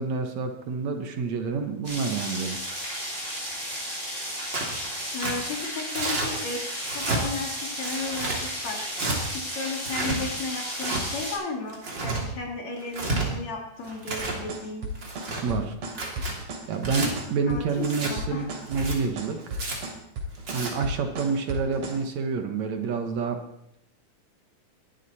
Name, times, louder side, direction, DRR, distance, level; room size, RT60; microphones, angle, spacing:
voice 1, 0.0-2.6 15.4-15.8 16.7-19.6 20.5-23.4, right 5 dB, 65° right, 6 dB, 2.6 m, -28 dB
sound 1, 1.8-11.3, equal, 15° right, 6.8 m, -34 dB
Tearing, 4.5-4.8 5.2-5.3 6.0-6.3 6.8-7.2 7.8-8.4 8.9-9.2 9.8-10.2 10.8-11.0 11.7-12.2 12.8-13.3 13.8-14.4 15.0-15.4 15.9-16.3 16.8-17.1 17.8-18.1 18.7-19.0 19.5-19.8 20.4-20.7, right 2 dB, 35° right, 3.5 m, -30 dB
voice 2, 5.1-6.6 6.9-8.8 9.3-14.9 17.5-18.5, left 3 dB, 60° left, 1 dB, 3.8 m, -34 dB
sound 2, 14.2-22.0, equal, 90° right, 4.3 m, -34 dB
21.0 x 12.0 x 4.3 m, 0.78 s
omnidirectional pair, 3.5 m